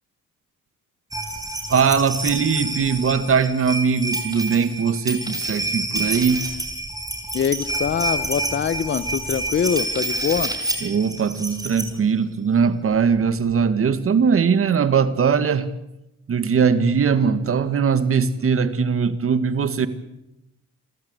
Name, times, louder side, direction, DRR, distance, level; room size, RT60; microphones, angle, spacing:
sound 1, 1.1-11.9 12.9-13.0 13.2-13.3, right 1 dB, 10° right, 5.2 m, -28 dB
voice 1, 1.7-6.4 10.8-15.7 16.3-19.9, right 6 dB, 45° right, 1.8 m, -20 dB
voice 2, 7.3-10.6, left 7 dB, 40° left, 0.9 m, -23 dB
28.5 x 13.5 x 8.1 m
cardioid pair, 90°, 30 cm